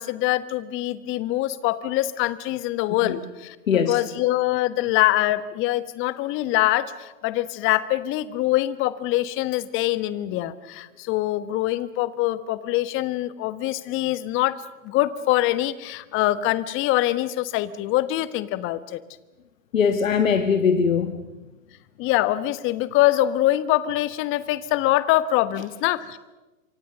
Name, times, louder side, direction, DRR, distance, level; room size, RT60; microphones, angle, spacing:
voice 1, 0.0-19.0 22.0-26.2, left 15 dB, 30° left, 15 dB, 1.3 m, -24 dB
voice 2, 3.7-4.0 19.7-21.1, left 6 dB, 70° left, 8 dB, 1.6 m, -21 dB
27.0 x 25.0 x 6.8 m, 1.1 s
figure-of-eight pair, 110°, 41 cm